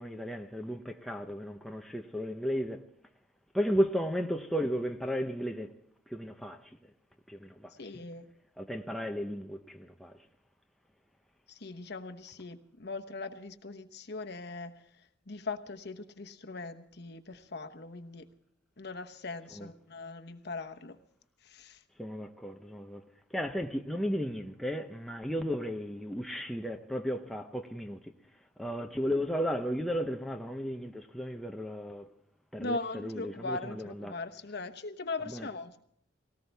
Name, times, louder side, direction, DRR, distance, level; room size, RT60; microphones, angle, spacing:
voice 1, 0.0-2.8 3.5-5.7 6.1-6.6 7.3-7.7 8.6-10.1 19.6-19.7 22.0-23.0 23.3-28.0 28.6-32.1 32.5-34.1 35.3-35.5, equal, ahead, 0.7 m, -34 dB
voice 2, 7.8-8.3 11.5-14.7 15.3-18.3 18.8-21.0 21.4-21.8 32.6-35.8, left 3 dB, 60° left, 1.1 m, -40 dB
19.0 x 18.5 x 3.4 m
head